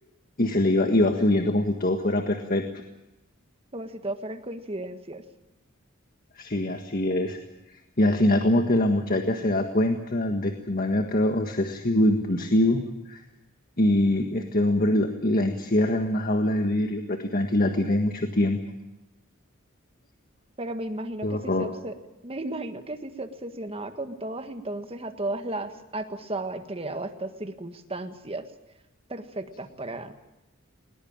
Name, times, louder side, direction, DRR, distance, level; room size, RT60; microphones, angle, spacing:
voice 1, 0.4-2.6 6.3-7.4 8.0-13.2 13.8-18.6 21.2-21.7, left 1 dB, 45° left, 4 dB, 1.6 m, -23 dB
voice 2, 3.7-5.2 20.6-21.9 22.2-28.5 29.1-30.1, right 2 dB, 30° right, 8 dB, 1.7 m, -34 dB
20.5 x 20.5 x 8.9 m, 0.95 s
head